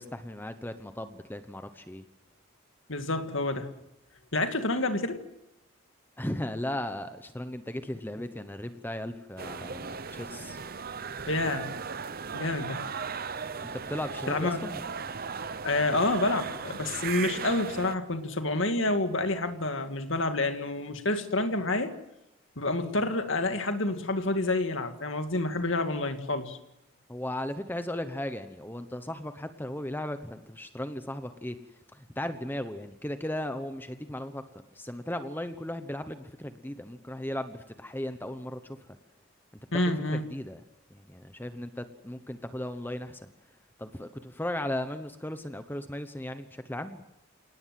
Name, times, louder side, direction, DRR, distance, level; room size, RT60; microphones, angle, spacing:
voice 1, 0.0-2.0 6.2-10.6 13.7-14.8 27.1-31.6 31.9-34.4 34.7-38.8 39.7-39.8 40.1-40.6 40.9-43.2 43.8-47.0, left 1 dB, 10° left, 9 dB, 1.0 m, -36 dB
voice 2, 2.9-3.7 4.3-5.2 11.3-11.7 12.3-12.9 14.3-14.6 15.6-21.9 22.6-26.6 39.7-40.2, left 2 dB, 60° left, 7 dB, 2.2 m, -28 dB
sound 1, 9.4-18.0, right 5 dB, 45° right, 0.8 m, -37 dB
28.5 x 18.5 x 7.7 m, 0.85 s
head